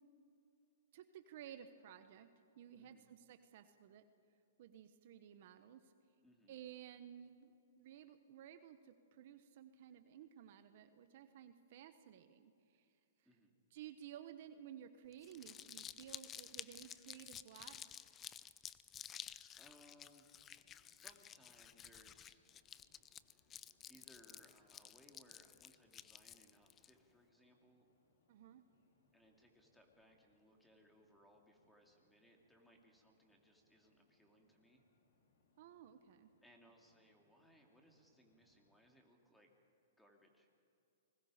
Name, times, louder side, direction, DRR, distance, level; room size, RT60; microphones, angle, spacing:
voice 1, 0.9-2.3 2.6-4.0 4.6-5.9 6.5-12.9 13.7-18.2 28.3-28.6 35.6-36.3, right 10 dB, 55° right, 10 dB, 1.2 m, -55 dB
voice 2, 6.2-6.6 13.2-13.5 18.9-19.2 19.5-20.5 20.9-22.4 23.9-27.9 29.1-34.8 36.4-39.5 40.0-40.5, equal, 5° left, 1 dB, 2.7 m, -67 dB
Crumpling crinkling, 15.1-26.9, left 9 dB, 20° left, 0.5 m, -53 dB
sound 1, 20.1-38.8, left 3 dB, 65° left, 4.6 m, -80 dB
29.5 x 20.5 x 5.1 m, 2.6 s
hypercardioid pair, 145°, 0 cm